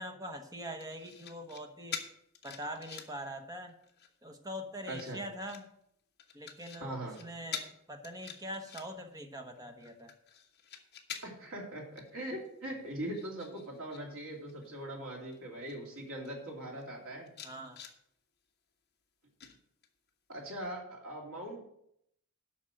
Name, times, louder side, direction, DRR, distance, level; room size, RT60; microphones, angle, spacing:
voice 1, 0.0-2.0 2.4-3.7 4.2-5.7 6.3-10.1 17.4-17.8, equal, 15° right, 5 dB, 1.1 m, -43 dB
sound 1, 0.8-1.6 1.9-3.3 3.7-4.2 4.8-5.6 6.2-6.8 7.1-7.2 7.5-7.7 8.0-9.1 9.6-11.5 12.0-12.1 12.4-14.0 14.3-14.7 15.3-15.4 15.7-16.3 16.8-16.9 17.3-17.9 19.4-20.1 20.5-20.7, left 8 dB, 45° left, 1.2 m, -46 dB
voice 2, 4.9-5.2 6.8-7.2 11.2-17.3 20.3-21.6, right 1 dB, 60° right, -1 dB, 2.8 m, -41 dB
8.6 x 5.8 x 7.7 m, 0.73 s
head